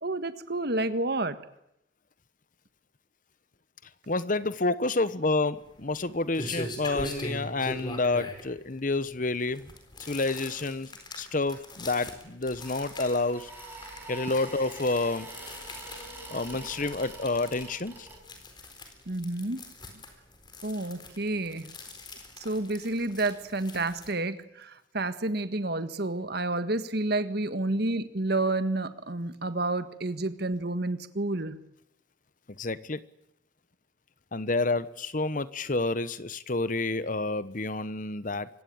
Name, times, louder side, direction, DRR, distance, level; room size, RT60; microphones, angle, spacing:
voice 1, 0.0-1.4 19.1-19.6 20.6-21.7 22.4-31.6, right 2 dB, 55° right, 11 dB, 1.6 m, -30 dB
voice 2, 4.1-9.7 10.1-10.9 11.2-13.5 14.1-15.3 16.3-18.1 32.6-33.0 34.3-38.5, left 3 dB, 40° left, 15 dB, 1.1 m, -29 dB
sound 1, 5.6-24.1, left 1 dB, 25° left, 4.1 m, -42 dB
sound 2, 12.3-18.6, right 2 dB, 10° right, 5.5 m, -45 dB
25.5 x 21.0 x 8.8 m, 0.81 s
head